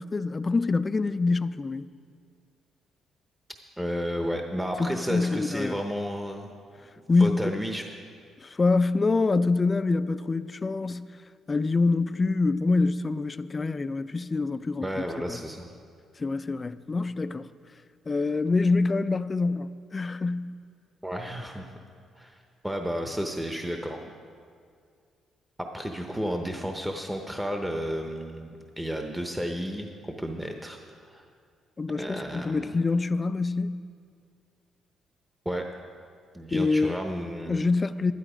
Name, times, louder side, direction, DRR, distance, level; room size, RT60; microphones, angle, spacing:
voice 1, 0.0-1.9 4.8-5.8 7.1-7.6 8.4-11.1 11.5-14.9 15.3-15.4 16.2-17.5 18.1-20.5 31.8-33.8 36.5-37.0 37.5-38.1, left 3 dB, 30° left, 0.4 m, -25 dB
voice 2, 3.8-6.5 7.2-7.8 14.8-15.7 21.0-21.7 22.2-22.4 22.6-24.0 25.6-30.8 31.1-31.2 32.0-32.8 35.4-35.7 36.3-37.7, equal, 5° right, 0.8 m, -32 dB
12.5 x 11.0 x 5.0 m
cardioid pair, 90°, 0 cm